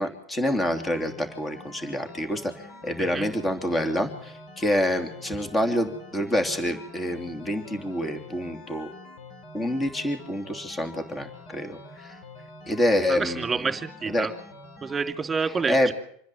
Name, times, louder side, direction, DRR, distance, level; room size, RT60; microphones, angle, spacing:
voice 1, 0.0-8.9 9.5-12.2 12.7-13.7 14.1-14.3 15.7-15.9, left 1 dB, 15° left, 6 dB, 3.1 m, -27 dB
sound 1, 0.8-15.1, left 2 dB, 50° left, 4.8 m, -46 dB
voice 2, 13.1-14.3 14.8-15.9, right 5 dB, 20° right, 7 dB, 3.1 m, -28 dB
27.0 x 10.5 x 9.3 m, 0.65 s
hypercardioid pair, 95°, 0 cm